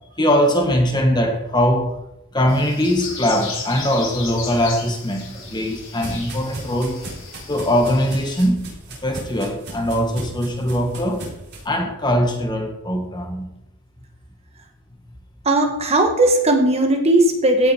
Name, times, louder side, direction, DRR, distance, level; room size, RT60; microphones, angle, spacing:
voice 1, 0.2-2.0 2.3-7.0 7.5-8.6 9.0-11.2 11.6-13.5, equal, 20° left, 3 dB, 1.5 m, -21 dB
sound 1, 2.5-8.5, left 4 dB, 65° left, 3.6 m, -35 dB
sound 2, 5.1-11.7, right 1 dB, 50° right, 4.9 m, -37 dB
voice 2, 15.4-17.7, right 1 dB, 30° right, 4 dB, 1.4 m, -17 dB
16.5 x 6.6 x 4.5 m, 0.88 s
head